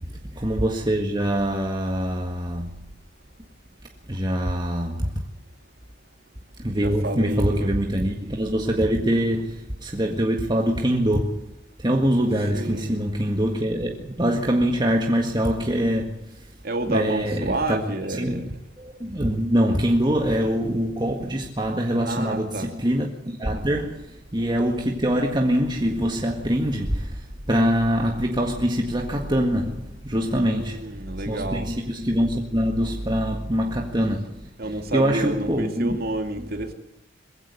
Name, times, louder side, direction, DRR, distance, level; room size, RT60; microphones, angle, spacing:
voice 1, 0.0-2.9 4.1-5.2 6.6-16.5 16.9-17.8 18.1-18.5 18.8-36.0 36.4-36.5, equal, 20° right, 1.8 m, -24 dB
voice 2, 6.7-7.7 12.5-13.0 16.6-18.4 22.0-22.7 30.1-31.7 34.6-36.7, right 2 dB, 50° right, 2.6 m, -29 dB
22.0 x 16.0 x 8.1 m
head